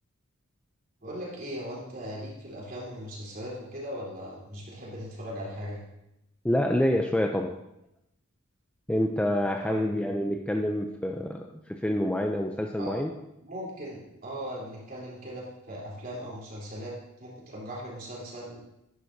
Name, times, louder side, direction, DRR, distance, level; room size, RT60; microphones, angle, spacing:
voice 1, 1.0-5.8 9.6-9.9 12.8-13.0 13.4-18.6, equal, 40° right, -5 dB, 3.6 m, -39 dB
voice 2, 6.4-7.5 8.9-13.1, left 1 dB, 5° left, 3 dB, 0.4 m, -27 dB
11.0 x 10.5 x 2.7 m, 0.85 s
head